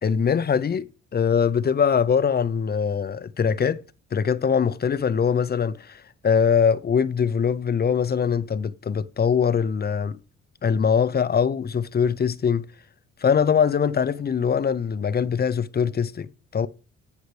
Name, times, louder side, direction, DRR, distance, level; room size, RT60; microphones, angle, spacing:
voice 1, 0.0-3.8 4.1-10.2 10.6-12.7 13.2-16.7, left 7 dB, 35° left, 0.6 m, -22 dB
16.5 x 5.6 x 3.3 m
cardioid pair, 90°, 30 cm